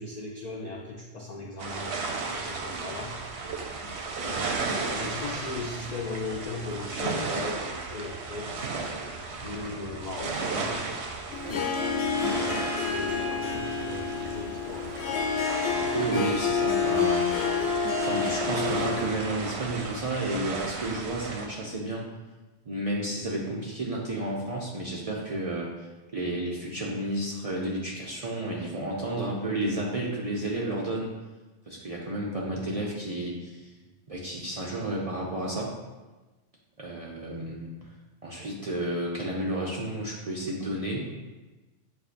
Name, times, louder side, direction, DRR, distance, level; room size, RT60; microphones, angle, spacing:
voice 1, 0.0-2.0 2.3-3.2 4.2-8.7 9.4-11.0 12.3-15.0 32.5-32.6, left 3 dB, 80° left, -1 dB, 0.3 m, -38 dB
sound 1, 1.6-21.5, right 4 dB, 65° right, 0.8 m, -35 dB
voice 2, 9.5-9.8 11.4-11.6 15.9-17.6 17.9-22.0 22.7-25.9 26.1-31.1 31.7-33.7 34.1-35.7 36.8-37.7 38.2-41.1, right 1 dB, 50° right, -4 dB, 0.4 m, -31 dB
Harp, 11.3-19.2, left 5 dB, 65° left, 0.8 m, -28 dB
7.7 x 2.6 x 2.5 m, 1.2 s
omnidirectional pair, 1.3 m